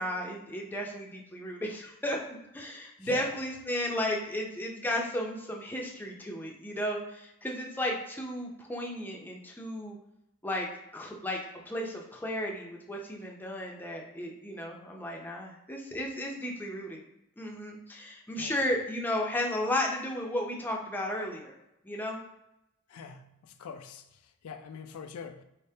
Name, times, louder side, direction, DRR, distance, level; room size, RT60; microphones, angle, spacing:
voice 1, 0.0-2.2 2.5-10.0 10.4-10.7 10.9-11.4 11.7-17.0 17.4-21.5 21.8-22.2, left 1 dB, 10° left, 0.6 m, -34 dB
voice 2, 22.9-25.4, left 5 dB, 75° left, 0.4 m, -44 dB
4.2 x 3.4 x 2.7 m
head